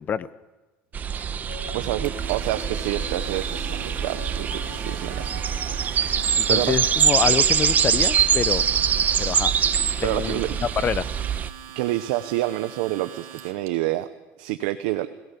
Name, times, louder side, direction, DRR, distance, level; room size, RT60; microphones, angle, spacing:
sound 1, 0.9-11.5, right 7 dB, 35° right, 1.0 m, -24 dB
Piano, 1.4-11.8, left 3 dB, 85° left, 5.3 m, -44 dB
voice 1, 1.7-5.3 6.5-6.7 10.0-10.6 11.7-14.1 14.4-15.1, right 16 dB, 85° right, 9 dB, 0.9 m, -28 dB
Domestic sounds home sounds, 2.0-13.7, right 11 dB, 65° right, 2.8 m, -43 dB
voice 2, 6.4-8.7 9.2-9.5 10.0-11.1, left 7 dB, 35° left, 17 dB, 0.8 m, -26 dB
22.0 x 17.0 x 6.9 m, 1.1 s
cardioid pair, 120°, 5 cm